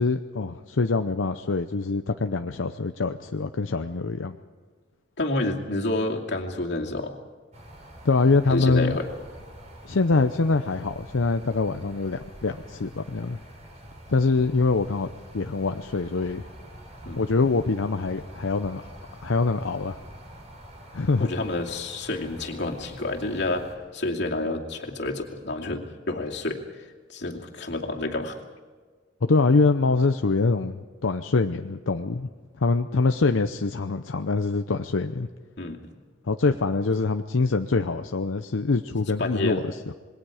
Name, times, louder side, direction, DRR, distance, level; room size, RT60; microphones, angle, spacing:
voice 1, 0.0-4.4 8.0-9.0 9.8-13.4 14.1-15.1 15.3-16.4 17.2-18.8 19.2-20.0 20.9-21.3 29.2-32.3 32.6-35.3 36.3-39.9, left 3 dB, 85° left, 7 dB, 0.7 m, -24 dB
voice 2, 5.2-7.1 8.5-9.1 17.1-17.2 21.2-23.7 23.9-26.8 27.1-28.4 35.6-36.0 39.2-39.7, left 2 dB, 60° left, 0 dB, 2.5 m, -29 dB
sound 1, 7.5-23.7, right 1 dB, 35° right, 4.3 m, -45 dB
27.0 x 21.5 x 4.9 m, 1.5 s
head